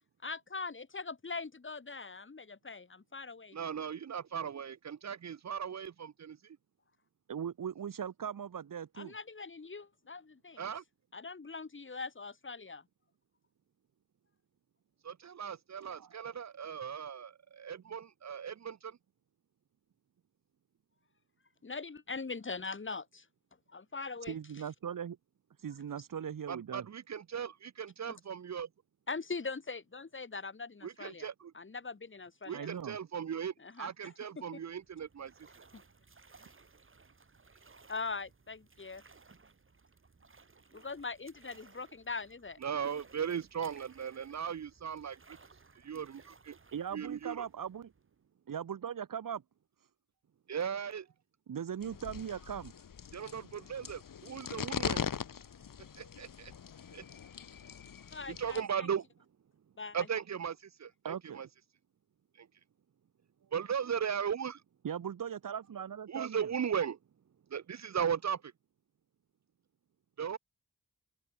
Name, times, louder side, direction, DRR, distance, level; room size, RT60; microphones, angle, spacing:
voice 1, 0.2-3.6 8.9-10.7 11.1-12.8 21.6-23.3 23.7-24.3 29.1-31.3 31.5-32.7 33.6-34.4 35.7-35.8 37.9-39.0 40.7-42.6 58.1-58.9 59.8-60.1, left 4 dB, 40° left, 3.0 m, -42 dB
voice 2, 3.5-6.6 10.6-10.8 15.0-19.0 26.5-28.7 30.8-31.5 32.5-35.7 42.6-45.4 45.8-46.6 46.9-47.5 50.5-51.1 53.1-55.1 56.0-56.5 56.9-57.1 58.3-59.0 59.9-61.5 62.3-62.5 63.5-64.6 66.1-67.0 67.5-68.5 70.2-70.4, right 7 dB, 55° right, 0.7 m, -37 dB
voice 3, 7.3-9.1 15.8-16.1 24.3-25.2 25.6-26.9 32.5-33.0 46.7-47.9 48.5-49.4 51.5-52.7 61.0-61.4 64.8-66.5, right 8 dB, 80° right, 1.2 m, -39 dB
sound 1, 34.5-48.3, right 4 dB, 40° right, 7.0 m, -61 dB
sound 2, 51.8-58.6, left 7 dB, 85° left, 2.0 m, -41 dB
open air
wide cardioid pair, 145°, 32 cm